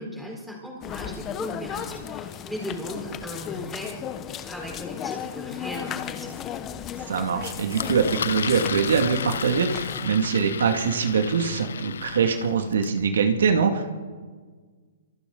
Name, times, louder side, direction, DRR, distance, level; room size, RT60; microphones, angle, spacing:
voice 1, 0.0-4.0 4.4-6.4, equal, ahead, -3 dB, 4.6 m, -37 dB
sound 1, 0.8-10.1, left 9 dB, 20° left, 1.0 m, -35 dB
voice 2, 7.1-13.9, right 6 dB, 85° right, 4 dB, 2.2 m, -23 dB
Engine, 7.7-13.0, left 7 dB, 85° left, 0.7 m, -34 dB
27.0 x 25.5 x 4.0 m, 1.5 s
hypercardioid pair, 160°, 0 cm